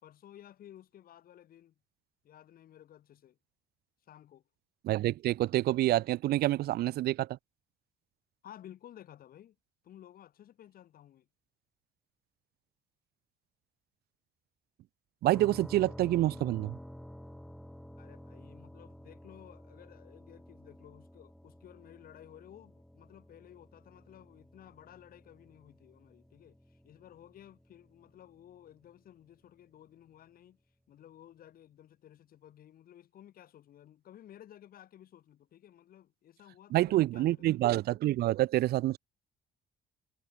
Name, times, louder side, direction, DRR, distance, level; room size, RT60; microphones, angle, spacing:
voice 1, 0.0-1.7 2.2-3.4 4.0-4.4 8.4-9.6 9.8-11.3 18.0-30.6 30.9-37.6, left 11 dB, 60° left, 5.8 m, -55 dB
voice 2, 4.8-7.4 15.2-16.8 36.7-39.0, right 15 dB, 70° right, 0.7 m, -27 dB
sound 1, 15.3-29.0, equal, ahead, 2.4 m, -51 dB
cardioid pair, 110°, 17 cm